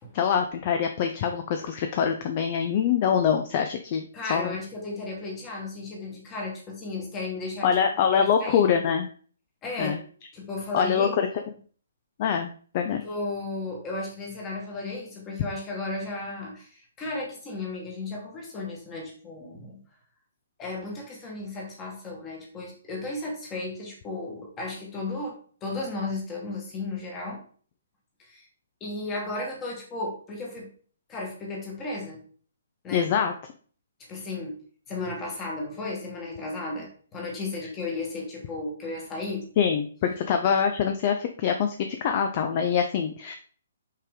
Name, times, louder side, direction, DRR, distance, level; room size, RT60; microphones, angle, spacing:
voice 1, 0.1-4.6 7.6-9.1 9.8-10.0 10.7-11.3 12.2-13.0 32.9-33.3 39.6-43.3, left 7 dB, 30° left, 6 dB, 0.5 m, -24 dB
voice 2, 4.1-7.7 8.1-8.7 9.6-10.0 10.3-11.2 12.9-19.8 20.6-25.3 25.6-27.4 28.2-28.5 28.8-30.7 31.1-32.2 32.8-33.1 34.1-34.6 34.9-39.5, left 2 dB, 15° left, 0 dB, 1.5 m, -34 dB
5.5 x 5.1 x 3.6 m, 0.43 s
hypercardioid pair, 170°, 0 cm